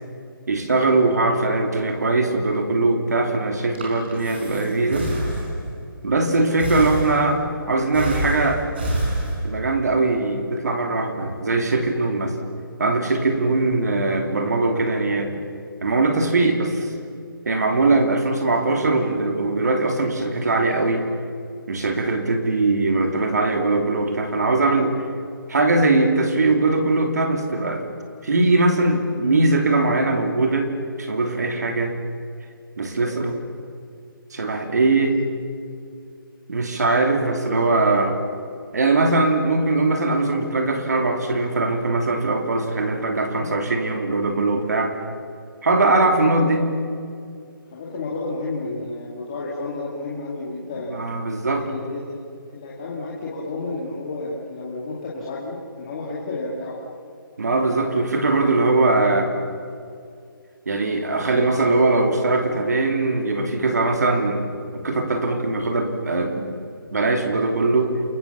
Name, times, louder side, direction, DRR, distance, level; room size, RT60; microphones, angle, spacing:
voice 1, 0.5-5.1 6.0-8.6 9.4-12.4 12.8-15.4 15.8-16.9 17.4-21.1 21.7-25.0 25.5-27.9 28.2-30.7 31.0-32.0 32.8-33.4 34.3-35.3 36.5-38.2 38.7-44.9 45.6-46.6 50.9-51.6 57.4-59.3 60.6-66.5 66.9-67.9, right 2 dB, 45° right, 4 dB, 3.0 m, -21 dB
Breathing, 3.5-5.8 6.6-7.5 7.9-9.8, right 1 dB, 25° right, 4.9 m, -28 dB
voice 2, 33.0-33.3 43.3-43.5 46.1-46.9 47.7-51.0 51.5-56.8, left 2 dB, 20° left, -5 dB, 2.2 m, -32 dB
29.5 x 23.0 x 7.1 m, 2.3 s
hypercardioid pair, 180°, 12 cm